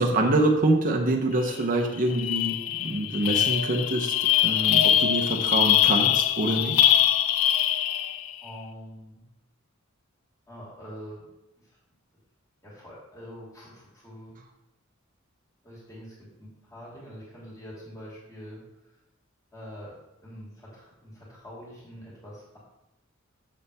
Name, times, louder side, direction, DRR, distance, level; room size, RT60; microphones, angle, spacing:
voice 1, 0.0-4.1 4.4-6.9, right 2 dB, 40° right, 2 dB, 0.8 m, -25 dB
sound 1, 1.5-1.6 1.9-8.4, left 11 dB, 75° left, 0.4 m, -23 dB
voice 2, 8.4-9.2 10.5-11.2 11.6-11.8 12.6-14.4 15.6-18.9 19.5-19.9 20.2-22.6, equal, 15° left, -6 dB, 2.6 m, -44 dB
7.1 x 6.9 x 3.4 m, 0.90 s
head